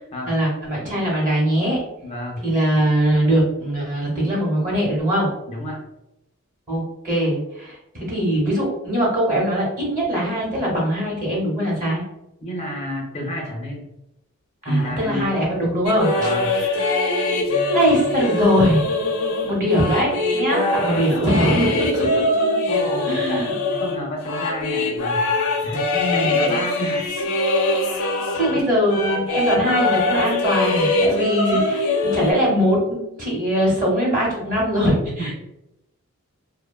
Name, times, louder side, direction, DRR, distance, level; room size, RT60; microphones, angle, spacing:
voice 1, 0.3-1.8 2.4-5.3 6.7-12.0 14.6-16.8 17.7-18.9 19.4-22.2 23.1-23.5 25.9-26.4 27.8-28.1 28.3-35.3, equal, 35° right, -4 dB, 0.9 m, -21 dB
voice 2, 2.0-2.4 5.5-5.8 12.4-13.9 14.7-15.4 16.2-16.6 20.5-21.1 22.7-25.3 25.6-27.1 28.0-28.1 28.5-28.7 34.9-35.3, equal, 30° left, 0 dB, 0.4 m, -30 dB
sound 1, 15.9-28.6 28.9-32.3, left 2 dB, 80° left, 0.5 m, -22 dB
2.6 x 2.2 x 2.2 m, 0.87 s
head